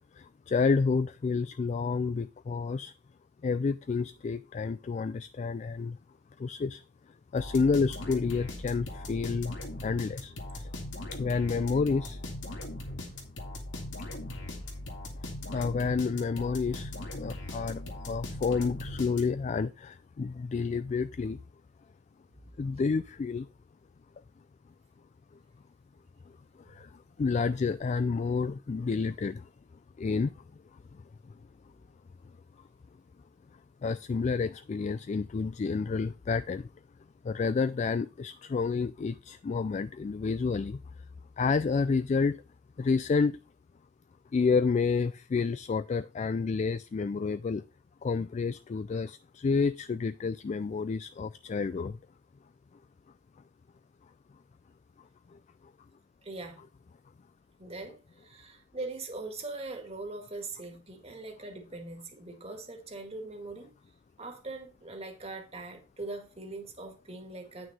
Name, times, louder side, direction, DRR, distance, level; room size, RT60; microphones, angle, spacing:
voice 1, 0.5-2.9 3.4-6.0 6.4-6.8 7.3-9.5 9.8-10.3 11.2-12.2 15.5-16.9 17.2-17.8 18.1-21.4 22.6-23.5 27.2-29.4 30.0-30.3 33.8-36.6 37.3-40.8 41.4-42.4 42.8-43.4 44.3-47.6 48.0-52.0, left 4 dB, 40° left, 0.3 m, -29 dB
sound 1, 7.4-19.6, left 1 dB, 85° left, 2.2 m, -40 dB
voice 2, 56.2-56.7 57.6-63.7 64.2-67.7, right 2 dB, 35° right, 1.9 m, -41 dB
9.2 x 6.1 x 4.1 m
head